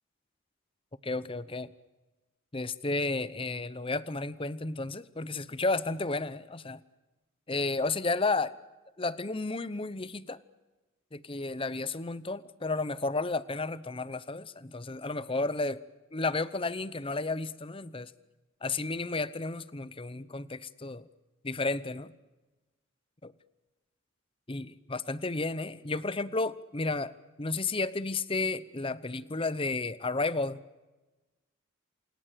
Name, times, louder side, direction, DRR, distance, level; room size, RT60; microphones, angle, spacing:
voice 1, 1.0-1.7 2.5-6.8 7.5-8.6 9.0-10.4 11.1-15.8 16.1-18.1 18.6-21.1 21.4-22.1 24.5-27.1 27.4-30.6, left 3 dB, 25° left, 16 dB, 0.8 m, -32 dB
28.0 x 27.0 x 6.8 m, 1.1 s
head